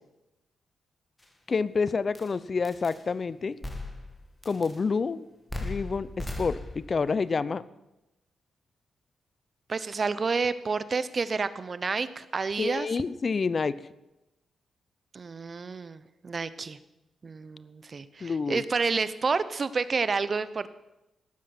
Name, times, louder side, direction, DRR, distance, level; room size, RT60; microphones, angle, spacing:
sound 1, 1.2-1.3 2.2-2.3 2.6-3.0 3.6-4.2 4.4-4.8 5.5-7.0, left 2 dB, 20° left, 2.3 m, -37 dB
voice 1, 1.5-3.6 4.5-5.3 5.6-7.6 12.6-13.8 18.2-18.6, left 4 dB, 50° left, 18 dB, 0.5 m, -28 dB
voice 2, 9.7-12.9 15.1-16.8 17.2-20.7, right 4 dB, 45° right, 15 dB, 0.7 m, -29 dB
18.0 x 7.4 x 6.0 m, 0.94 s
supercardioid pair, 50°, 0 cm